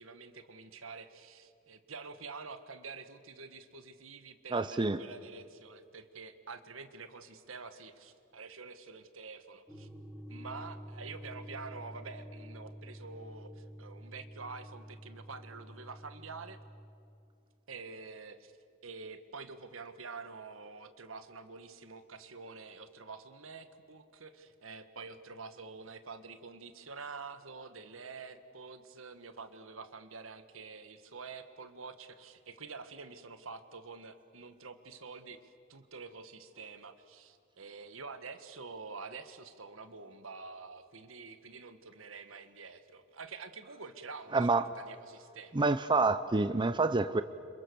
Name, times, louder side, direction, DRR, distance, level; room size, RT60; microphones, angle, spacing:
voice 1, 0.0-9.9 10.3-16.6 17.7-18.5 18.8-45.7, right 4 dB, 80° right, 10 dB, 1.6 m, -47 dB
voice 2, 4.5-5.0 44.3-44.7 45.5-47.2, right 3 dB, 25° right, 11 dB, 0.6 m, -27 dB
sound 1, 9.7-16.9, equal, 5° right, 2.4 m, -48 dB
29.5 x 26.5 x 7.0 m, 2.4 s
head